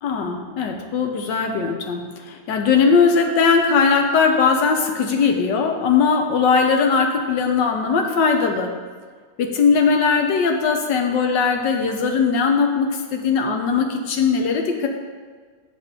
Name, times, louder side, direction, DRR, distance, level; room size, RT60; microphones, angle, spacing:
voice 1, 0.0-8.7 9.4-14.9, left 5 dB, 85° left, 4 dB, 1.5 m, -19 dB
6.7 x 5.3 x 6.6 m, 1.5 s
omnidirectional pair, 1.9 m